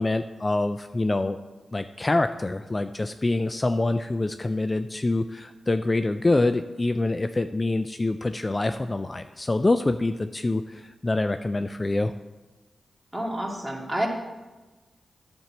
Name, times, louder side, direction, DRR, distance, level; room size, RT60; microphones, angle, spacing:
voice 1, 0.0-1.4 1.7-12.1, left 2 dB, 30° left, 9 dB, 0.4 m, -25 dB
voice 2, 13.1-14.1, right 1 dB, 15° right, 0 dB, 2.1 m, -29 dB
9.3 x 4.5 x 7.1 m, 1.2 s
cardioid pair, 45°, 0 cm